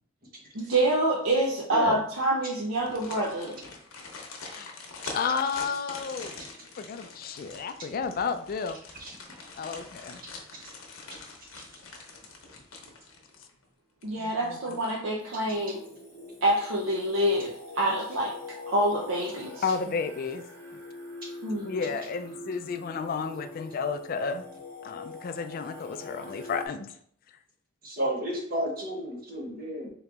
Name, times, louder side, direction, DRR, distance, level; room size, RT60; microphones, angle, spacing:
voice 1, 0.5-3.6 14.0-15.8 16.4-18.3 18.7-19.7 21.4-21.8, right 1 dB, 70° right, -3 dB, 0.6 m, -27 dB
sound 1, 2.7-13.7 14.0-14.1 14.5-15.2 15.5-15.7, left 3 dB, 90° left, 0.8 m, -44 dB
voice 2, 5.1-6.3 6.8-8.8 9.6-10.2 14.2-14.6 19.6-20.4 21.6-24.5 24.8-26.9, left 5 dB, 45° left, 10 dB, 0.3 m, -32 dB
Singing, 15.2-26.7, left 2 dB, 10° left, 1.0 m, -44 dB
voice 3, 27.8-29.9, right 1 dB, 45° right, -2 dB, 1.1 m, -33 dB
3.7 x 3.0 x 3.4 m, 0.64 s
head